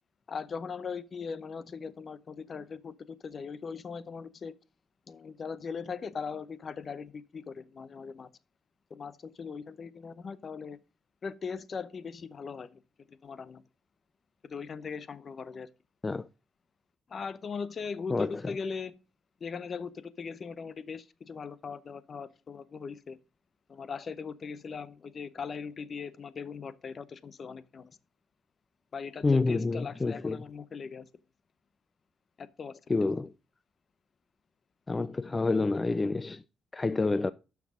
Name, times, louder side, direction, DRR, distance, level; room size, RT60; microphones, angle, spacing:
voice 1, 0.3-4.5 5.1-8.3 8.9-10.8 11.2-13.6 14.4-15.7 17.1-18.9 19.4-23.2 23.7-28.0 28.9-31.1 32.4-32.8, left 5 dB, 45° left, 0.7 m, -40 dB
voice 2, 29.2-30.4 32.9-33.3 34.9-36.4 36.7-37.3, left 3 dB, 25° left, 0.4 m, -28 dB
12.0 x 5.9 x 3.7 m
cardioid pair, 90°, 0 cm